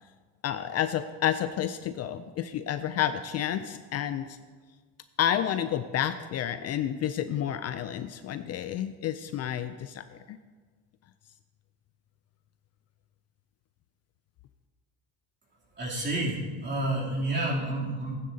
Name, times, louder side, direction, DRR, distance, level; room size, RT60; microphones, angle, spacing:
voice 1, 0.4-4.4 5.2-10.4, left 10 dB, 45° left, 10 dB, 0.4 m, -30 dB
voice 2, 15.8-18.2, right 1 dB, 30° right, -4 dB, 3.1 m, -30 dB
14.5 x 9.4 x 2.8 m, 1.5 s
cardioid pair, 110°, 35 cm